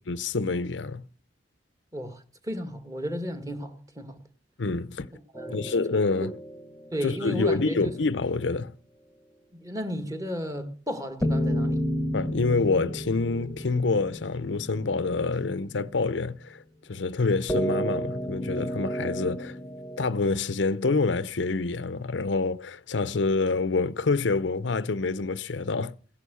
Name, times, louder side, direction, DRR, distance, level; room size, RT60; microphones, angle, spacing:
voice 1, 0.1-1.0 4.6-5.1 5.5-6.3 7.0-8.7 12.1-16.6 16.9-19.6 20.0-25.9, left 3 dB, 70° left, 0.7 m, -27 dB
voice 2, 1.9-4.2 5.3-5.7 6.2-6.3 6.9-7.9 9.6-11.8, equal, 20° right, 1.9 m, -34 dB
sound 1, 5.3-8.0 11.2-15.8 17.5-20.1, equal, 10° left, 1.2 m, -32 dB
17.0 x 11.0 x 6.9 m
head